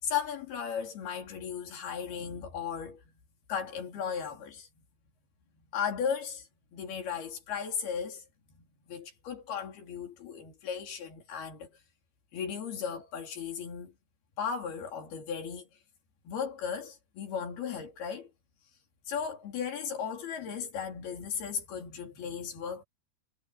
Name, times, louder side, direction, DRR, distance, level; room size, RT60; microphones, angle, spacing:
voice 1, 0.0-3.0 3.5-4.7 5.7-8.3 8.5-11.7 12.3-13.9 14.4-15.7 16.3-18.3 19.1-22.8, left 7 dB, 85° left, 5.5 m, -36 dB
omnidirectional pair, 4.3 m